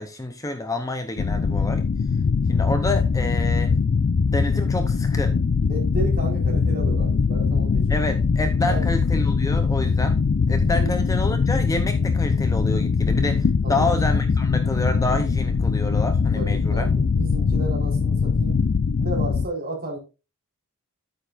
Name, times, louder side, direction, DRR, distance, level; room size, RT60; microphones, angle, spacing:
voice 1, 0.0-1.9 2.5-3.7 4.3-5.4 7.9-10.2 10.5-16.9, left 2 dB, 15° left, 0.7 m, -28 dB
sound 1, 1.2-19.5, left 5 dB, 45° left, 0.3 m, -22 dB
voice 2, 5.7-7.9 8.7-8.9 10.6-11.0 13.6-13.9 16.3-18.6 19.0-20.0, right 1 dB, 40° right, 4.0 m, -32 dB
9.2 x 8.8 x 2.5 m
head